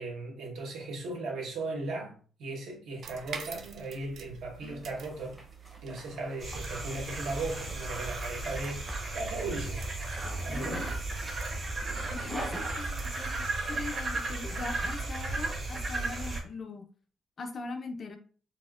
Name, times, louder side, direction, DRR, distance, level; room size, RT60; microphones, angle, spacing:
voice 1, 0.0-5.4 5.8-9.9 10.4-10.9 14.7-14.9, right 2 dB, 70° right, 1.1 m, -37 dB
sound 1, 3.0-14.3, right 6 dB, 55° right, 0.3 m, -49 dB
Zipper (clothing), 4.8-13.5, equal, 5° right, 0.6 m, -45 dB
sound 2, 6.4-16.4, right 2 dB, 35° right, 0.9 m, -35 dB
voice 2, 10.5-10.9 12.1-16.8 17.4-18.2, left 3 dB, 35° left, 0.4 m, -41 dB
4.1 x 2.1 x 2.4 m
cardioid pair, 155°, 0 cm